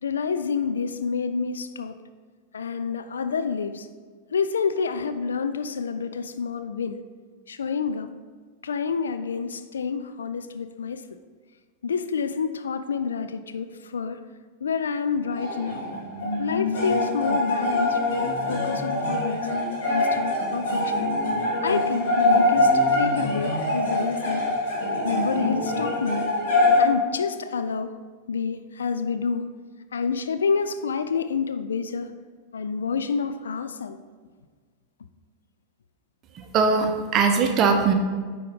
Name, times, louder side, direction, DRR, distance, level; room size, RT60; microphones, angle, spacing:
voice 1, 0.0-2.0 2.5-3.9 4.3-7.0 7.5-8.1 8.6-11.0 11.8-14.2 14.6-15.8 16.4-19.5 19.9-21.1 21.6-24.4 25.0-26.2 26.8-27.9 28.3-29.5 29.9-32.1 32.5-34.0, left 5 dB, 70° left, 10 dB, 0.4 m, -28 dB
sound 1, 15.3-26.8, left 2 dB, 55° left, 1.9 m, -24 dB
voice 2, 36.5-37.9, right 5 dB, 35° right, 5 dB, 0.8 m, -20 dB
9.4 x 3.8 x 3.7 m, 1.5 s
figure-of-eight pair, 90°, 0 cm